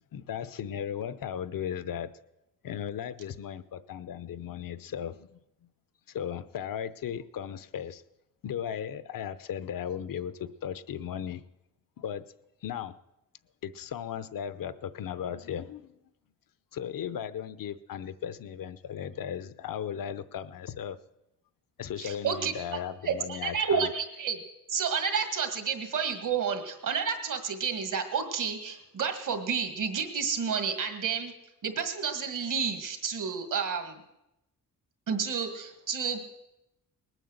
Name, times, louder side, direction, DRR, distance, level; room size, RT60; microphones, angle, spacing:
voice 1, 0.1-2.1 2.6-5.4 6.1-8.0 8.4-11.4 12.0-12.3 12.6-12.9 13.6-15.9 16.7-21.0 21.8-23.9, left 9 dB, 75° left, 14 dB, 0.8 m, -36 dB
voice 2, 22.0-22.5 23.0-24.4 24.7-31.3 31.6-34.0 35.1-36.2, right 6 dB, 65° right, 7 dB, 2.0 m, -30 dB
20.0 x 9.2 x 7.9 m, 0.89 s
wide cardioid pair, 165°, 34 cm